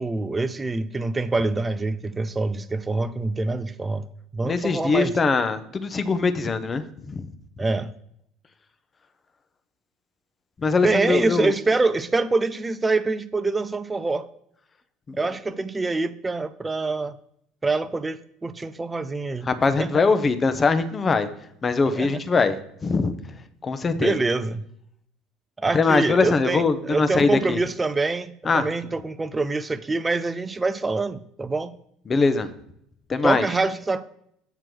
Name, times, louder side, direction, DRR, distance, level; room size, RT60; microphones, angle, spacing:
voice 1, 0.0-4.1 4.3-5.1 7.6-7.9 10.8-14.3 15.2-17.2 17.6-19.5 19.8-19.9 22.0-22.1 24.0-24.6 25.6-31.7 33.2-34.0, right 3 dB, 15° right, 0.5 m, -25 dB
voice 2, 4.4-7.3 10.6-11.5 15.1-15.3 19.5-21.3 21.6-22.6 22.8-23.1 23.6-24.1 25.7-27.6 28.4-28.7 32.1-32.5 33.1-33.5, left 4 dB, 25° left, 0.8 m, -22 dB
7.8 x 4.5 x 6.0 m
figure-of-eight pair, 65°, 0 cm